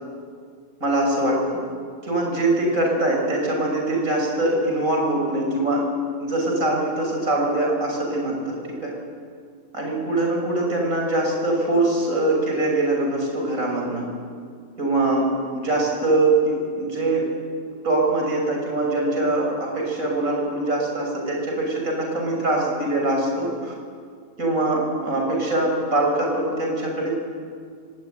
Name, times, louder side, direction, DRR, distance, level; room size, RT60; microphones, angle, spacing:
voice 1, 0.8-1.6 2.0-5.9 6.2-8.9 9.7-14.0 14.8-17.3 17.8-23.7 24.4-27.1, right 2 dB, 80° right, 0 dB, 6.7 m, -23 dB
23.5 x 19.0 x 9.4 m, 2.1 s
omnidirectional pair, 1.4 m